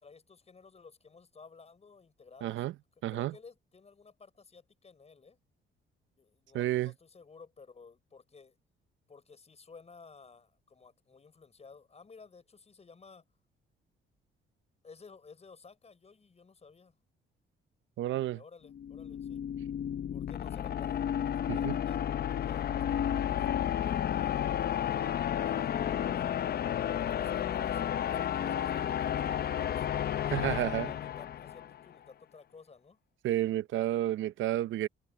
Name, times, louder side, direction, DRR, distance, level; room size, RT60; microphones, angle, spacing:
voice 1, 0.0-2.6 3.1-5.4 6.2-8.6 9.1-13.2 14.8-17.0 18.3-19.4 20.1-22.7 23.1-26.5 26.9-29.9 30.4-33.0, left 4 dB, 35° left, 6.0 m, -54 dB
voice 2, 2.4-2.7 3.0-3.3 6.5-6.9 18.0-18.4 21.5-21.8 30.3-30.9 33.2-34.9, right 14 dB, 75° right, 0.7 m, -31 dB
sound 1, 18.7-31.8, left 10 dB, 50° left, 0.7 m, -32 dB
cardioid pair, 90°, 20 cm